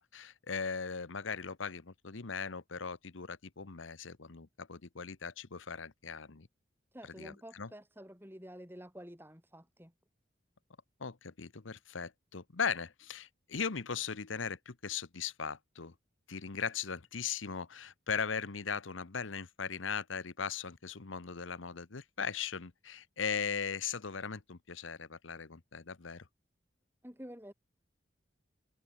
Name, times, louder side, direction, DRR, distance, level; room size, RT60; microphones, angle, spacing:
voice 1, 0.0-6.5 7.2-7.7 11.0-15.9 16.3-26.2, left 6 dB, 85° left, 1.0 m, -38 dB
voice 2, 6.9-9.9 27.0-27.5, equal, 10° right, 6.3 m, -49 dB
head